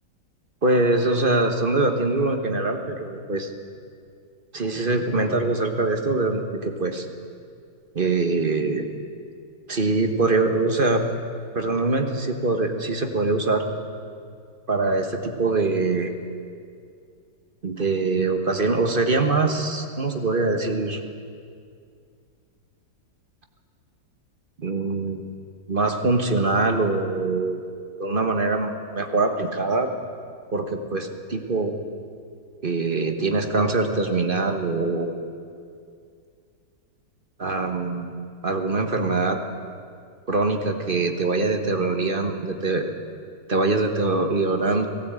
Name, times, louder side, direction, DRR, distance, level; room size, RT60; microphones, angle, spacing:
voice 1, 0.6-3.5 4.5-7.1 7.9-8.8 9.7-11.0 11.5-13.6 14.7-16.1 17.6-21.0 24.6-25.2 25.7-27.6 28.0-29.9 30.5-31.7 32.6-35.1 37.4-38.1 38.4-39.4 40.3-42.9 43.5-44.9, right 3 dB, 35° right, 5 dB, 1.4 m, -23 dB
18.0 x 16.5 x 8.9 m, 2.3 s
omnidirectional pair, 1.9 m